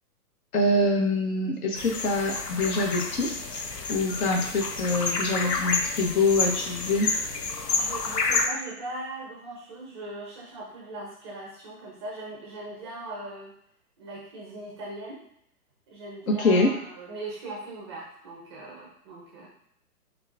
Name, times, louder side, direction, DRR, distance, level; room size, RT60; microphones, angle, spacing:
voice 1, 0.5-3.6 3.9-7.1 16.3-16.7, left 2 dB, 60° left, 1 dB, 1.2 m, -25 dB
sound 1, 1.7-8.5, left 4 dB, 85° left, 0.8 m, -29 dB
voice 2, 5.3-5.8 7.7-13.5 14.0-15.2 15.9-19.5, right 2 dB, 20° right, -3 dB, 0.4 m, -39 dB
6.7 x 2.4 x 2.4 m, 0.72 s
hypercardioid pair, 125°, 48 cm